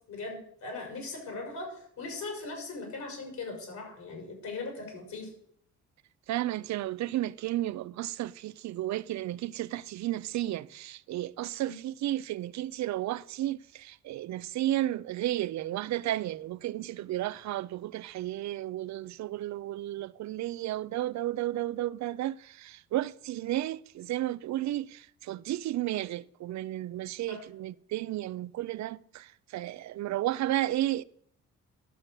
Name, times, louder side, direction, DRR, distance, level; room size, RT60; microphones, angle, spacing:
voice 1, 0.1-5.3 11.6-11.7 27.3-27.4, left 3 dB, 70° left, 5.8 m, -39 dB
voice 2, 6.3-31.0, right 14 dB, 65° right, 0.5 m, -33 dB
11.5 x 7.3 x 6.6 m
cardioid pair, 90°, 30 cm